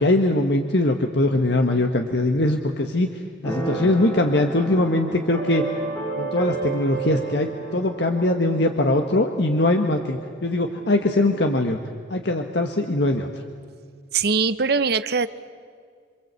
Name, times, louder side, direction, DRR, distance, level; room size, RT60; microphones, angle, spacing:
voice 1, 0.0-3.1 3.4-5.6 6.2-11.8 12.1-13.3, left 1 dB, 65° left, 4 dB, 1.4 m, -21 dB
Keyboard (musical), 3.4-10.9, right 3 dB, 15° left, 5.7 m, -32 dB
voice 2, 14.1-15.3, right 5 dB, 55° right, 13 dB, 0.8 m, -21 dB
27.5 x 24.5 x 8.2 m, 2.1 s
head